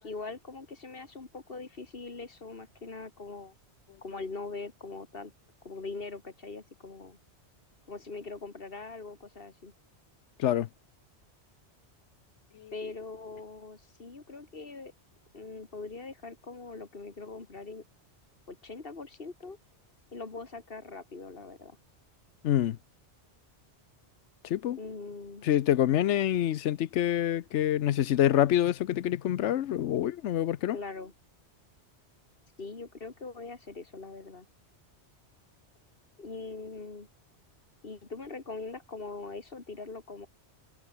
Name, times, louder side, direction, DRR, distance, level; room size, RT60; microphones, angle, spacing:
voice 1, 0.0-3.6 4.0-5.3 5.6-7.2 7.9-9.7 12.7-14.9 15.3-17.8 18.5-19.6 20.1-21.8 24.8-25.5 30.7-31.1 32.6-34.5 36.2-37.1 37.8-40.3, left 3 dB, 55° left, 2.3 m, -42 dB
voice 2, 22.4-22.8 24.4-24.8 25.4-30.8, left 11 dB, 85° left, 1.0 m, -26 dB
omnidirectional pair, 1.2 m